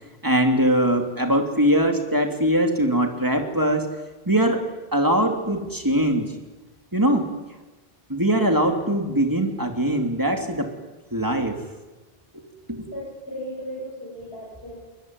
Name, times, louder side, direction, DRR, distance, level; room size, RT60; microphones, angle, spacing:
voice 1, 0.2-3.9 4.3-4.6 4.9-6.3 6.9-7.3 8.1-10.7 11.1-11.6 12.3-12.4 12.7-12.9, right 1 dB, 20° right, 4 dB, 3.0 m, -21 dB
voice 2, 12.9-14.8, equal, 80° left, -4 dB, 8.0 m, -36 dB
23.0 x 21.0 x 9.5 m, 1.1 s
omnidirectional pair, 1.0 m